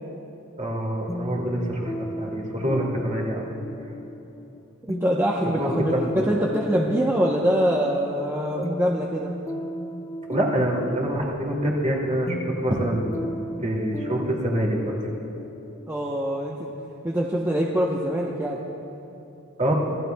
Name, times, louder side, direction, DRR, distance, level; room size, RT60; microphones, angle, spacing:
voice 1, 0.6-3.5 5.6-6.2 10.3-15.0 19.6-19.7, right 1 dB, 35° right, -2 dB, 2.5 m, -26 dB
sound 1, 1.1-16.7, equal, 15° left, 0.4 m, -36 dB
voice 2, 4.9-9.3 15.9-16.7 17.0-18.6, equal, 10° right, -3 dB, 0.9 m, -24 dB
26.5 x 17.5 x 2.3 m, 2.9 s
head